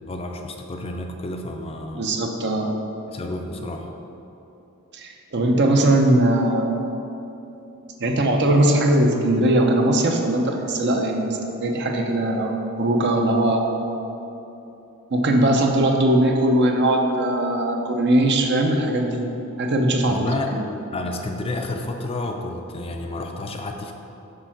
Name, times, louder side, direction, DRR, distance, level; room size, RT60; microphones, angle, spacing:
voice 1, 0.0-2.1 3.1-3.9 20.1-20.6 20.9-23.9, left 2 dB, 25° left, 3 dB, 0.5 m, -30 dB
voice 2, 1.9-2.7 4.9-6.8 8.0-13.6 15.1-19.2 19.6-20.2 20.5-20.6, right 1 dB, 50° right, 2 dB, 0.7 m, -20 dB
6.7 x 4.3 x 5.9 m, 3.0 s
head